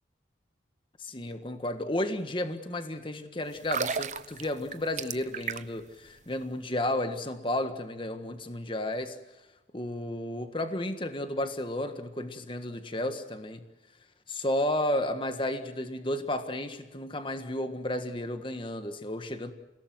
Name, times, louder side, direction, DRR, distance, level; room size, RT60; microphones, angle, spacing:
voice 1, 1.0-9.2 9.7-13.6 14.3-19.5, left 1 dB, 30° left, 8 dB, 1.6 m, -32 dB
sound 1, 3.5-5.9 6.2-6.4, right 6 dB, 40° right, 0.9 m, -33 dB
29.5 x 18.0 x 7.9 m, 1.0 s
head